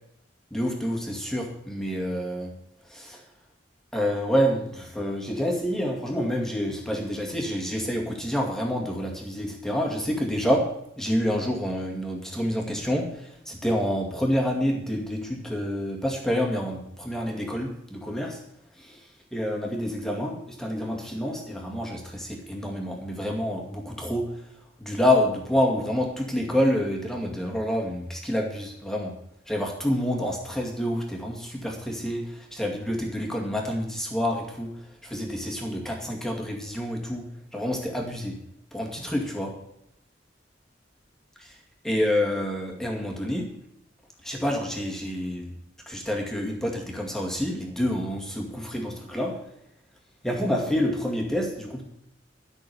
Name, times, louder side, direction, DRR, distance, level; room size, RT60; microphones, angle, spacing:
voice 1, 0.5-2.6 2.9-3.2 3.9-18.4 18.8-19.0 19.3-24.3 24.8-29.2 29.5-34.8 35.0-37.3 37.5-38.4 38.7-39.6 41.8-43.5 44.2-45.5 45.9-49.4 50.2-51.8, equal, 5° left, 0 dB, 2.2 m, -28 dB
12.5 x 6.4 x 8.1 m, 0.77 s
head